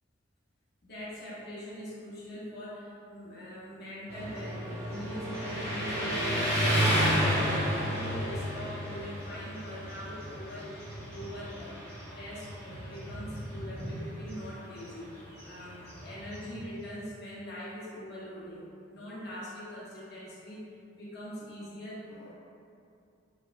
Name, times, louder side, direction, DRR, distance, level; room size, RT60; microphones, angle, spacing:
voice 1, 0.8-7.5 7.9-10.7 11.1-11.8 12.1-15.1 15.4-20.6 20.9-22.3, equal, 55° left, -8 dB, 0.7 m, -42 dB
Motorcycle, 4.1-16.7, equal, 15° right, 0.6 m, -32 dB
3.0 x 2.0 x 2.4 m, 2.5 s
head